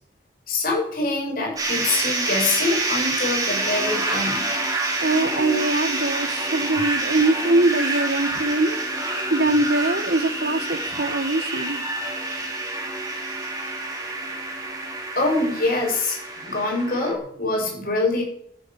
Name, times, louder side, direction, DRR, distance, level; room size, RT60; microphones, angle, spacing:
voice 1, 0.5-4.5 15.2-16.2 16.5-18.2, left 2 dB, 55° left, 8.0 m, -24 dB
sound 1, 1.6-17.1, right 2 dB, 20° right, 4.8 m, -27 dB
voice 2, 5.0-8.8 9.3-11.8, right 2 dB, 60° right, 1.6 m, -22 dB
14.5 x 12.0 x 7.8 m
head